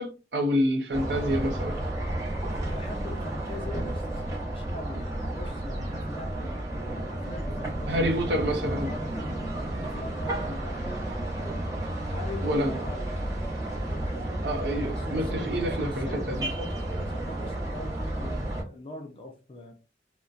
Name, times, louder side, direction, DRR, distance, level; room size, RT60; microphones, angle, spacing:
voice 1, 0.0-1.8 7.9-8.9 12.4-12.7 14.4-16.5, equal, 70° right, 0.6 m, -28 dB
sound 1, 0.9-18.6, right 1 dB, 20° right, 0.8 m, -32 dB
voice 2, 2.7-9.4 9.8-11.6 12.1-13.5 13.9-14.5 14.9-19.7, left 2 dB, 30° left, 0.4 m, -42 dB
2.6 x 2.1 x 2.3 m
head